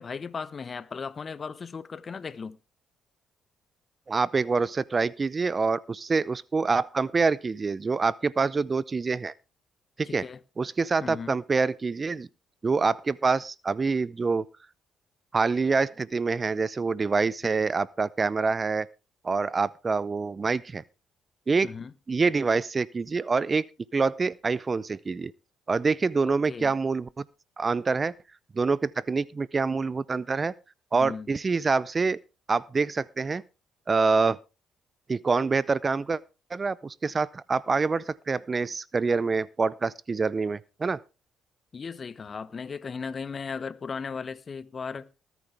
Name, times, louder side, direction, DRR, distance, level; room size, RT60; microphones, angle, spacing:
voice 1, 0.0-2.6 10.0-10.4 11.0-11.4 21.6-21.9 26.2-26.7 30.9-31.3 41.7-45.1, left 5 dB, 45° left, 1.0 m, -36 dB
voice 2, 4.1-9.3 10.0-10.2 10.6-12.3 12.6-14.4 15.3-18.9 19.2-20.8 21.5-21.7 22.1-23.7 23.9-25.3 25.7-27.2 27.6-28.1 28.5-30.5 30.9-32.2 32.5-33.4 33.9-34.4 35.1-36.2 36.5-41.0, right 4 dB, 35° right, 0.6 m, -26 dB
19.5 x 9.3 x 3.4 m
supercardioid pair, 60°, 0 cm